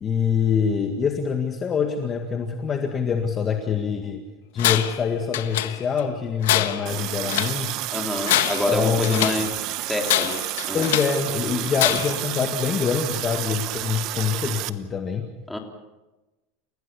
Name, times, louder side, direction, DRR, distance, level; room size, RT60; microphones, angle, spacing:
voice 1, 0.0-4.2 4.5-7.8 8.7-9.2 10.7-15.3, left 6 dB, 25° left, 4 dB, 1.9 m, -25 dB
Tools, 4.6-5.0 5.3-6.0 6.4-7.6 8.1-9.5 10.0-11.2 11.7-12.3, left 14 dB, 85° left, 1.5 m, -25 dB
Water tap faucet, 6.9-14.7, right 16 dB, 50° right, 1.0 m, -30 dB
voice 2, 7.9-9.5 9.9-10.9 11.6-11.7 15.5-15.6, left 1 dB, 5° left, 2 dB, 3.4 m, -27 dB
30.0 x 16.5 x 7.0 m, 1.1 s
supercardioid pair, 145°, 0 cm